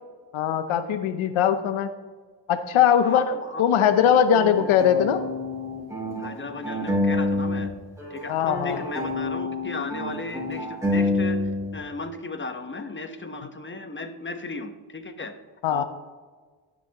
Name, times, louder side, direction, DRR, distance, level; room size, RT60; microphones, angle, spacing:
voice 1, 0.3-1.9 2.5-5.2 8.3-8.8 15.6-15.8, left 8 dB, 75° left, 9 dB, 0.8 m, -21 dB
voice 2, 3.0-3.6 6.2-7.7 8.1-15.3 15.7-15.8, left 3 dB, 25° left, 7 dB, 1.2 m, -35 dB
sound 1, 3.8-7.7 8.0-11.8, left 2 dB, 5° right, 3.3 m, -28 dB
17.0 x 6.2 x 3.0 m, 1.4 s
cardioid pair, 65°, 48 cm